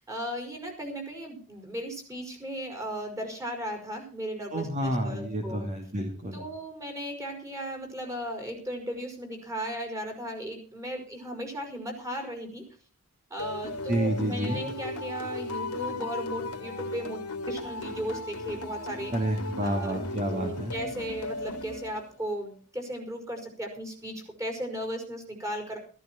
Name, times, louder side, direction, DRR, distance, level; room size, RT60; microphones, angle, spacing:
voice 1, 0.0-5.7 6.3-12.6 13.3-17.2 17.5-19.1 19.6-25.8, equal, 15° right, 4 dB, 4.9 m, -36 dB
voice 2, 4.5-6.4 13.9-14.6 19.1-20.8, right 1 dB, 35° right, 2 dB, 2.5 m, -29 dB
sound 1, 13.4-22.3, left 2 dB, 90° left, 2.4 m, -36 dB
15.0 x 14.5 x 4.4 m, 0.38 s
head